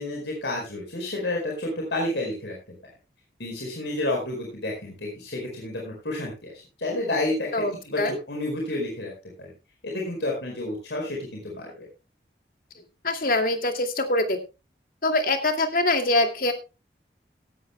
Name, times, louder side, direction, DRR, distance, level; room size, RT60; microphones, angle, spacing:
voice 1, 0.0-2.5 3.4-6.5 6.8-9.1 9.4-9.5 9.8-11.9, left 1 dB, 85° left, 0 dB, 4.7 m, -30 dB
voice 2, 7.5-8.2 13.0-14.4 15.0-16.5, left 2 dB, 50° left, 6 dB, 2.3 m, -24 dB
17.5 x 13.0 x 2.2 m, 0.28 s
head